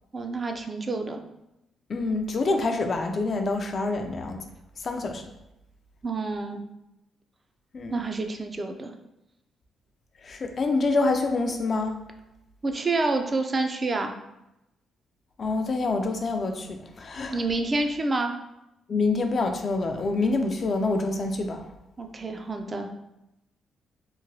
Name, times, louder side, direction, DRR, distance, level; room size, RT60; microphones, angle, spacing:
voice 1, 0.1-1.2 6.0-6.6 7.9-8.9 12.6-14.1 17.3-18.3 22.0-22.9, right 3 dB, 30° right, 5 dB, 0.3 m, -28 dB
voice 2, 1.9-4.4 4.8-5.2 7.7-8.0 10.2-12.0 15.4-17.4 18.9-21.7, left 3 dB, 45° left, 5 dB, 0.3 m, -26 dB
2.9 x 2.2 x 2.7 m, 0.90 s
cardioid pair, 85°, 0 cm